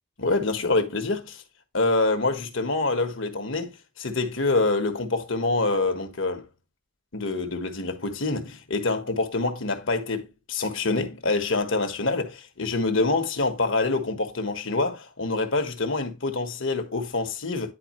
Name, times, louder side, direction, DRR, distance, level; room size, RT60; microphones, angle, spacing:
voice 1, 0.2-1.4 1.7-6.4 7.1-17.7, left 3 dB, 60° left, 1.4 m, -26 dB
10.0 x 4.7 x 3.1 m
head